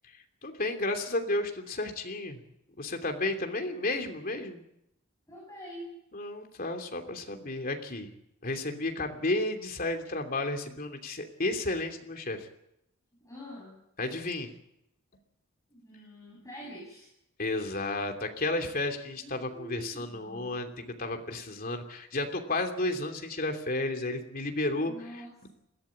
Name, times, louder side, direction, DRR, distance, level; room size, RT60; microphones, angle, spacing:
voice 1, 0.0-2.4 2.8-4.6 6.1-8.1 8.4-12.5 14.0-14.5 17.4-25.5, left 2 dB, 45° left, 4 dB, 2.9 m, -32 dB
voice 2, 5.3-6.0 13.2-13.8 15.7-17.1 19.2-20.6 24.9-25.5, equal, 15° left, -3 dB, 7.6 m, -45 dB
21.5 x 15.5 x 8.7 m, 0.81 s
head